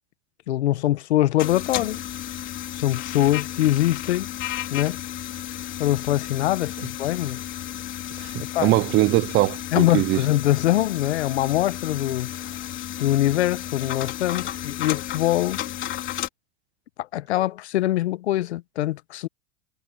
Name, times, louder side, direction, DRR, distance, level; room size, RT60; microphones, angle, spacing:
voice 1, 0.5-2.0 2.7-4.3 4.7-5.0 5.8-7.4 8.5-8.7 9.7-12.6 13.0-15.6 17.0-19.3, left 14 dB, 80° left, 1.1 m, -23 dB
sound 1, 1.4-16.3, left 12 dB, 35° left, 4.0 m, -33 dB
voice 2, 8.2-10.2, right 18 dB, 35° right, 0.5 m, -22 dB
hypercardioid pair, 115°, 33 cm